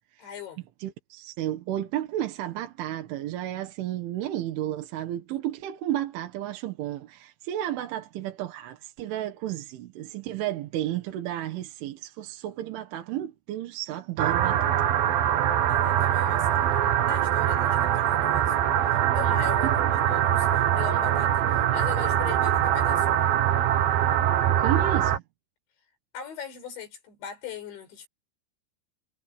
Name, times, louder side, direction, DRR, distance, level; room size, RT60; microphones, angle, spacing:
voice 1, 0.2-0.7 15.6-18.6 18.8-19.8 20.1-23.3 26.1-28.1, left 7 dB, 65° left, 7.1 m, -40 dB
voice 2, 0.8-14.8 19.6-19.8 24.6-25.2, right 12 dB, 80° right, 4.1 m, -32 dB
sound 1, 14.2-25.2, right 11 dB, 60° right, 2.7 m, -23 dB
omnidirectional pair, 5.6 m